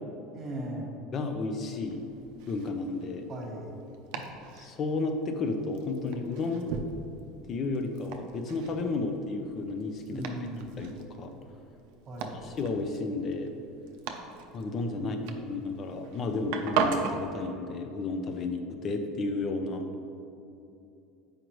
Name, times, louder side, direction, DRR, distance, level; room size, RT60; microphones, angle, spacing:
voice 1, 0.3-0.9 3.3-3.7 10.1-10.9 12.0-12.4 14.9-15.4, right 1 dB, 25° right, -1 dB, 1.3 m, -38 dB
voice 2, 1.1-2.0 2.5-3.3 4.1-4.2 4.5-6.8 7.5-10.2 10.8-10.9 11.2-11.3 12.4-13.5 14.5-15.2 15.4-19.8, left 3 dB, 30° left, 5 dB, 0.5 m, -32 dB
Domestic sounds home sounds, 1.7-17.2, right 6 dB, 65° right, 0.5 m, -38 dB
7.7 x 5.1 x 3.0 m, 2.7 s
cardioid pair, 160°, 0 cm